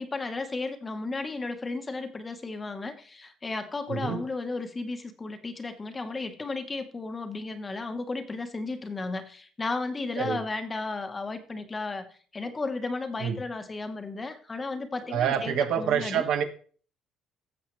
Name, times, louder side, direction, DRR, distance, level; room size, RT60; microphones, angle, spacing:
voice 1, 0.0-12.1 12.3-16.3, left 3 dB, 20° left, 8 dB, 1.0 m, -34 dB
voice 2, 3.9-4.2 10.2-10.4 13.2-13.4 15.1-16.4, right 8 dB, 70° right, 7 dB, 1.2 m, -27 dB
14.5 x 7.2 x 3.1 m, 0.43 s
cardioid pair, 130°, 0 cm